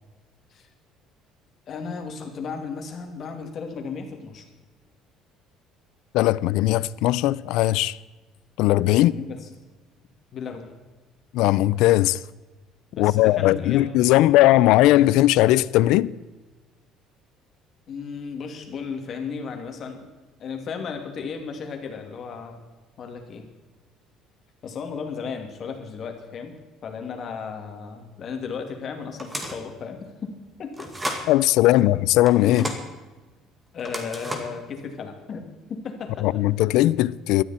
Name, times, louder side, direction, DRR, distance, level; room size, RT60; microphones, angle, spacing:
voice 1, 1.7-4.4 8.9-9.5 10.3-10.8 12.9-13.9 17.9-20.1 20.4-22.6 23.0-23.5 24.6-26.6 26.8-30.3 30.6-30.9 31.7-31.9 32.5-32.8 33.7-35.4 35.7-36.3, left 5 dB, 40° left, 2.7 m, -34 dB
voice 2, 6.1-8.0 8.6-9.1 11.3-12.2 13.0-16.1 31.3-32.6 36.2-37.4, left 16 dB, 75° left, 0.5 m, -18 dB
sound 1, 29.2-29.7 30.7-31.3 32.3-32.8 33.8-34.6, right 1 dB, 10° right, 2.1 m, -33 dB
18.5 x 13.0 x 4.4 m
cardioid pair, 160°, 0 cm